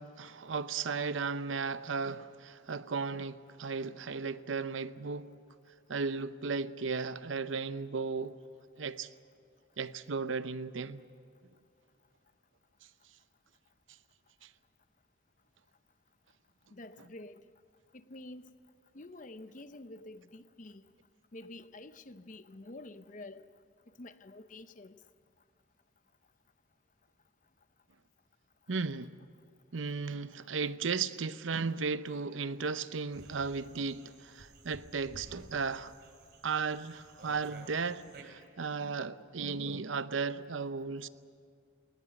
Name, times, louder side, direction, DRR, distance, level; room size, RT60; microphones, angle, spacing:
voice 1, 0.0-5.3 5.9-8.4 8.8-9.1 9.8-11.0 14.4-14.5 28.7-29.1 29.7-35.9 36.4-41.1, right 4 dB, 85° right, 0.7 m, -35 dB
voice 2, 16.7-17.5 17.9-18.5 18.9-20.8 21.3-23.5 24.0-25.0, left 2 dB, 40° left, 0.7 m, -48 dB
sound 1, 33.1-38.2, right 2 dB, 55° right, 3.1 m, -54 dB
21.0 x 19.5 x 8.9 m
head